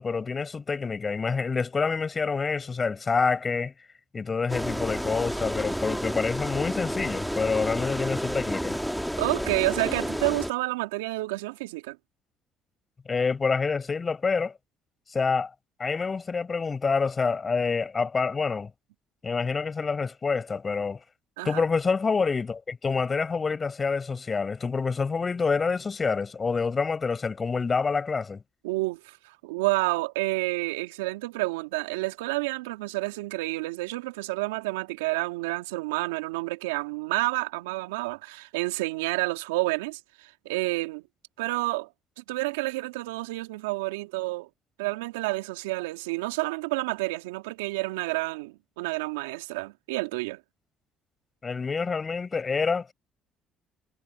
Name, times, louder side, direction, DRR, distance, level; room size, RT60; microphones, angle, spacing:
voice 1, 0.0-3.7 4.1-8.8 13.1-14.5 15.1-15.5 15.8-18.7 19.2-21.0 21.4-28.4 51.4-52.9, left 5 dB, 35° left, 5.6 m, -27 dB
sound 1, 4.5-10.5, equal, ahead, 2.0 m, -31 dB
voice 2, 9.2-12.0 21.4-21.6 28.6-41.0 41.4-41.9 42.2-44.5 44.8-50.4, right 22 dB, 85° right, 2.7 m, -29 dB
hypercardioid pair, 60°, 0 cm